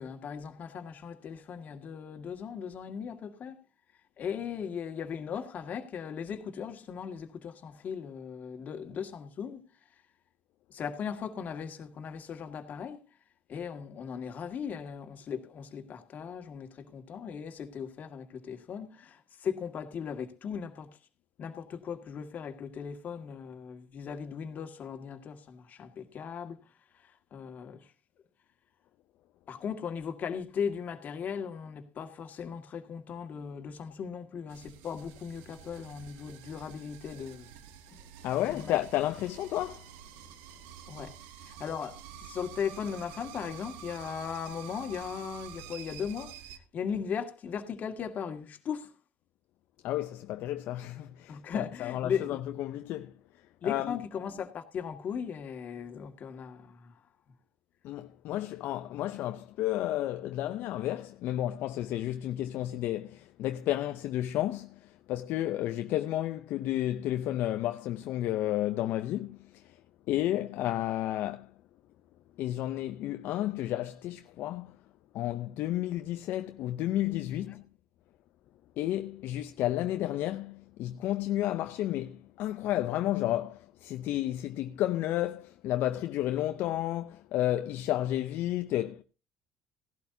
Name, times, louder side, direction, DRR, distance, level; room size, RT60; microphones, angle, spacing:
voice 1, 0.0-3.6 4.2-9.6 10.7-13.0 13.5-20.9 21.4-26.6 27.0-27.9 29.5-37.5 37.9-38.0 38.5-38.7 40.9-41.1 41.5-46.3 46.7-48.9 51.3-52.4 53.6-56.9 77.5-77.6, left 7 dB, 50° left, 1.8 m, -38 dB
sound 1, 34.5-46.6, right 9 dB, 80° right, 1.0 m, -48 dB
voice 2, 38.2-39.9 49.8-53.1 53.6-54.0 57.8-69.8 70.1-71.5 72.4-74.8 75.1-77.6 78.8-89.0, left 13 dB, 65° left, 0.6 m, -32 dB
16.5 x 12.0 x 2.7 m
supercardioid pair, 85°, 4 cm